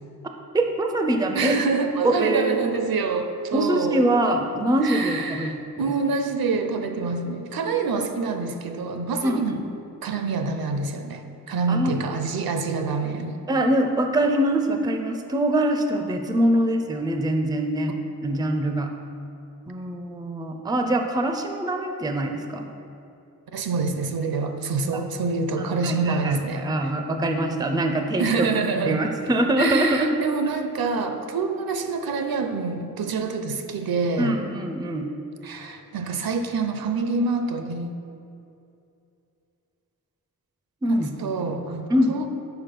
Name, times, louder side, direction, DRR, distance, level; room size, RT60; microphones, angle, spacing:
voice 1, 0.5-1.6 2.0-2.6 3.5-5.9 9.2-9.6 11.7-12.0 13.5-18.0 18.2-18.9 19.7-22.7 24.9-25.0 25.6-28.5 28.8-30.1 34.2-35.1 40.8-41.1 41.9-42.2, right 1 dB, 10° right, 5 dB, 0.4 m, -24 dB
voice 2, 1.4-4.1 4.8-9.6 10.0-11.2 11.5-13.4 23.5-26.9 28.2-29.0 29.6-34.4 35.4-37.9 40.9-42.3, right 4 dB, 80° right, 7 dB, 0.6 m, -26 dB
5.9 x 4.7 x 5.2 m, 2.7 s
wide cardioid pair, 120°, 35 cm